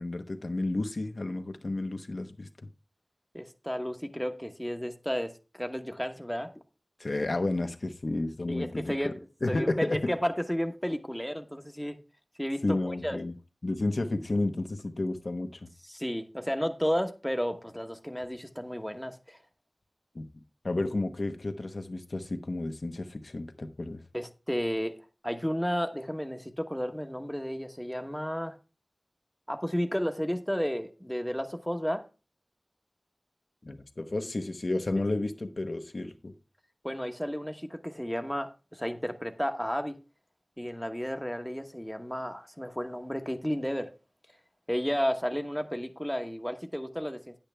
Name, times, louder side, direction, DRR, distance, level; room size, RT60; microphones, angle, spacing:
voice 1, 0.0-2.5 7.0-9.1 9.4-10.1 12.6-13.3 13.6-15.7 20.1-20.3 20.6-24.0 33.6-36.3, left 2 dB, 75° left, 1.1 m, -31 dB
voice 2, 3.3-6.5 8.5-9.1 9.5-12.0 12.4-13.2 15.9-19.4 24.1-25.0 25.2-28.6 29.5-32.0 36.8-40.0 40.6-43.9 44.7-47.3, equal, 5° left, 1.1 m, -32 dB
10.0 x 8.5 x 3.4 m
wide cardioid pair, 50°, 0 cm